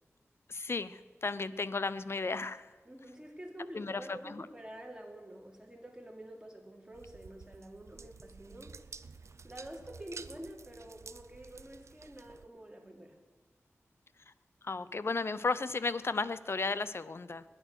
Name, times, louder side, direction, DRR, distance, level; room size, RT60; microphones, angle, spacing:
voice 1, 0.5-2.7 3.7-4.5 14.3-14.4 14.6-17.4, left 3 dB, 55° left, 15 dB, 0.7 m, -34 dB
voice 2, 2.8-8.8 9.1-9.2 9.4-13.2, right 1 dB, 15° right, 0 dB, 3.1 m, -48 dB
sound 1, 6.9-12.5, right 4 dB, 70° right, 0.5 m, -51 dB
21.0 x 8.9 x 6.4 m, 1.5 s
wide cardioid pair, 70°, 5 cm